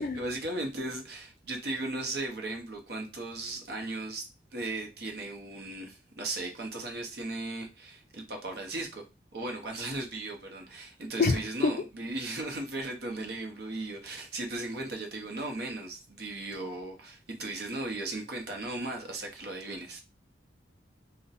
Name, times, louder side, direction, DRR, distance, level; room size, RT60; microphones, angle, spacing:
voice 1, 0.0-9.0 9.3-20.0, right 2 dB, 60° right, 0.7 m, -37 dB
voice 2, 11.2-11.7, left 4 dB, 50° left, 0.3 m, -26 dB
2.5 x 2.1 x 4.0 m
head